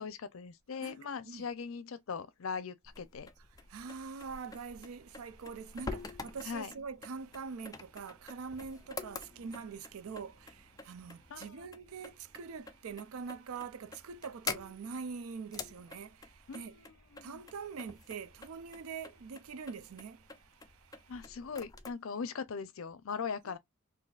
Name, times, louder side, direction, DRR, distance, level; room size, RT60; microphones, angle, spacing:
voice 1, 0.0-3.3 6.4-6.7 11.3-11.7 16.5-17.4 21.1-23.6, left 5 dB, 70° left, 0.5 m, -40 dB
sound 1, 2.8-21.9, left 4 dB, 15° left, 0.4 m, -47 dB
voice 2, 3.7-16.8 17.2-21.1 23.5-23.6, right 5 dB, 85° right, 0.4 m, -44 dB
4.0 x 2.6 x 2.3 m
head